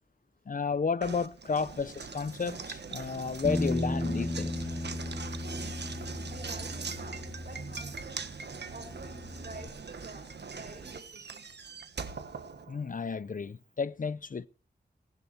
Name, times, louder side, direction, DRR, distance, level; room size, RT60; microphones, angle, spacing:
voice 1, 0.5-4.7 12.7-14.5, left 5 dB, 50° left, 0.7 m, -32 dB
Knock, 1.0-13.2, right 5 dB, 80° right, 1.4 m, -42 dB
Bass guitar, 3.4-8.2 8.5-9.7, left 1 dB, 20° left, 1.5 m, -35 dB
voice 2, 6.2-8.2 8.7-11.4, right 3 dB, 55° right, 6.0 m, -49 dB
18.5 x 11.0 x 4.2 m
wide cardioid pair, 90°, 17 cm